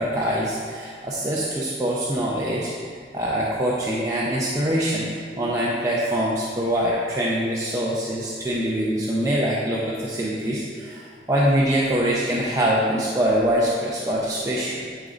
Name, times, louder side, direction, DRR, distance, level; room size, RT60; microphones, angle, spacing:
voice 1, 0.0-2.7 3.1-14.8, equal, 20° right, -6 dB, 0.7 m, -24 dB
10.5 x 3.9 x 4.0 m, 2.1 s
head